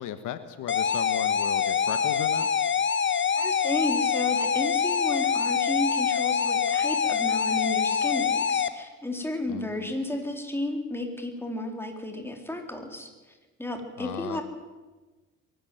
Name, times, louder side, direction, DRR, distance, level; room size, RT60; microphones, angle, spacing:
voice 1, 0.0-2.5 9.5-9.9 14.0-14.4, left 10 dB, 90° left, 11 dB, 1.4 m, -36 dB
sound 1, 0.7-8.7, left 7 dB, 40° left, 1.1 m, -25 dB
voice 2, 3.4-14.4, left 1 dB, 10° left, 4 dB, 4.0 m, -33 dB
22.5 x 12.5 x 9.4 m, 1.2 s
cardioid pair, 90°, 30 cm